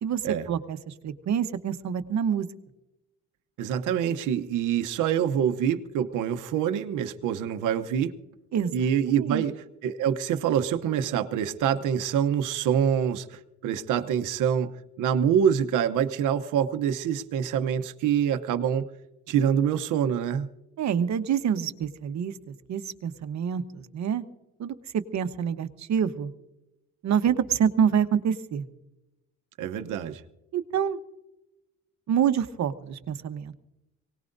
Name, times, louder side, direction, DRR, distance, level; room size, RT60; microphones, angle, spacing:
voice 1, 0.5-2.5 8.5-8.7 9.1-9.4 20.8-22.3 22.7-24.2 24.6-26.3 27.0-28.6 30.5-31.0 32.1-33.6, right 8 dB, 65° right, 10 dB, 1.1 m, -27 dB
voice 2, 3.6-8.1 8.7-18.9 19.3-20.5 29.6-30.2, right 8 dB, 90° right, 8 dB, 0.9 m, -26 dB
24.0 x 19.0 x 2.6 m, 0.96 s
cardioid pair, 90°, 30 cm